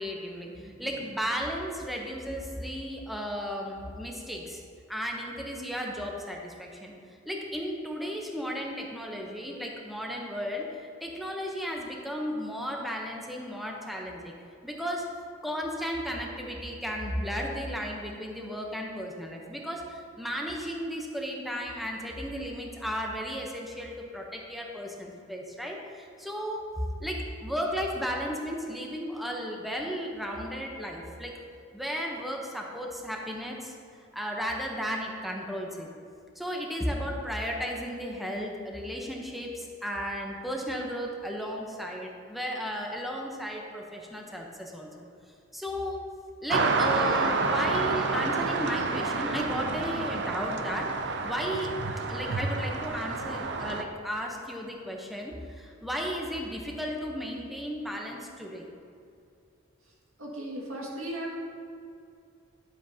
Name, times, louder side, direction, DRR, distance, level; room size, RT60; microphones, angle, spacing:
voice 1, 0.0-4.6 4.9-6.9 7.3-14.3 14.6-15.1 15.4-26.7 27.0-31.3 31.7-33.7 34.1-35.9 36.4-45.0 45.5-46.0 46.4-51.8 52.1-58.6, equal, ahead, -1 dB, 0.8 m, -34 dB
sound 1, 46.5-53.8, right 3 dB, 55° right, 0.6 m, -29 dB
voice 2, 60.2-61.3, right 1 dB, 85° right, -3 dB, 1.9 m, -36 dB
11.5 x 7.6 x 2.8 m, 2.5 s
head